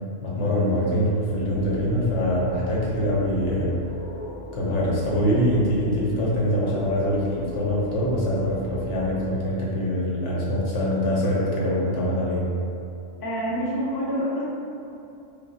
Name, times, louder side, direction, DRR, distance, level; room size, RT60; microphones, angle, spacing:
voice 1, 0.2-3.8 4.5-12.4, equal, 85° left, -5 dB, 1.1 m, -24 dB
sound 1, 1.2-9.3, equal, 20° right, 0.6 m, -41 dB
voice 2, 13.2-14.4, equal, 25° left, -7 dB, 0.5 m, -27 dB
4.6 x 2.1 x 2.8 m, 2.7 s
omnidirectional pair, 1.2 m